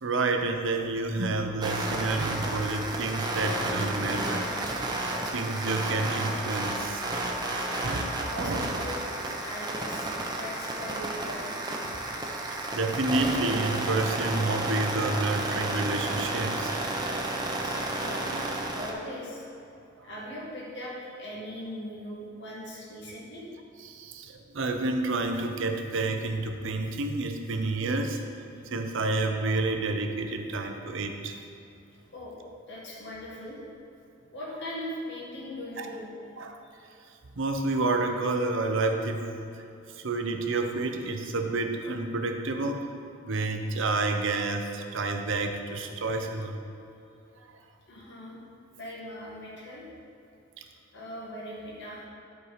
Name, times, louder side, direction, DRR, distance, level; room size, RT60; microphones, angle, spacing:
voice 1, 0.0-4.8 5.1-7.1 7.8-8.1 8.4-8.7 12.3-16.8 18.1-18.3 20.0-20.1 23.8-28.2 28.7-31.4 35.8-35.9 36.4-36.6 37.4-39.2 39.9-42.9 43.2-46.6 47.4-47.5, right 2 dB, 65° right, 5 dB, 0.8 m, -29 dB
sound 1, 1.6-18.9, right 2 dB, 20° right, 0.9 m, -32 dB
voice 2, 7.6-8.0 8.3-9.0 9.4-11.5 11.8-11.9 17.6-19.5 20.0-23.5 28.5-28.6 32.1-32.4 32.7-33.6 34.3-36.1 36.6-36.7 47.9-48.4 48.7-49.9 50.9-52.1, left 1 dB, 60° left, -5 dB, 2.0 m, -40 dB
12.0 x 4.6 x 5.0 m, 2.7 s
head